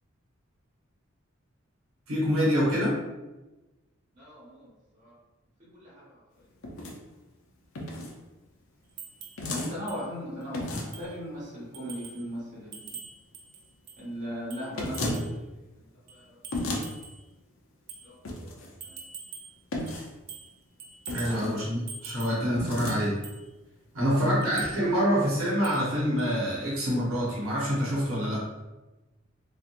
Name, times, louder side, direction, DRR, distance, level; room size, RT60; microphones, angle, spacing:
voice 1, 2.1-3.0 10.7-10.8 21.1-23.2 23.9-28.5, equal, 85° right, -7 dB, 1.0 m, -26 dB
voice 2, 4.1-4.7 4.9-5.1 5.7-6.0 6.4-6.5 9.5-13.0 14.0-16.9 18.0-18.1 18.4-19.0 21.2-21.6, equal, 35° right, -7 dB, 1.1 m, -39 dB
sound 1, 6.6-7.0 7.7-8.1 9.4-9.7 10.5-11.0 14.7-15.2 16.5-16.8 18.2-18.7 19.7-20.1 21.1-21.6 22.5-23.0, left 1 dB, 75° left, 0.5 m, -33 dB
sound 2, 9.0-9.4 9.9-10.0 10.4-10.5 10.9-11.2 11.7-12.2 12.7-14.0 14.5-15.4 16.1-17.2 17.9-18.1 18.8-19.6 19.9-20.5 20.8-21.4 21.9-22.4 22.9-23.4 24.4-24.8 25.6-25.9 26.2-26.3, right 5 dB, 55° right, 0.4 m, -44 dB
2.8 x 2.4 x 2.5 m, 1.1 s
head